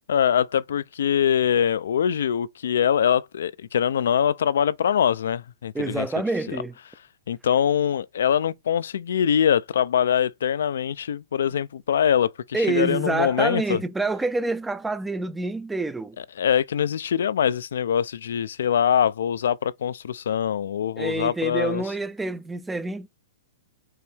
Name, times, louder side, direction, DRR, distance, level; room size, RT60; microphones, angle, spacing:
voice 1, 0.1-6.1 6.5-6.6 7.3-13.8 16.4-21.8, left 8 dB, 80° left, 0.3 m, -23 dB
voice 2, 5.7-6.7 12.5-16.2 21.0-23.1, right 3 dB, 10° right, 0.3 m, -27 dB
4.5 x 2.7 x 3.3 m
hypercardioid pair, 130°, 0 cm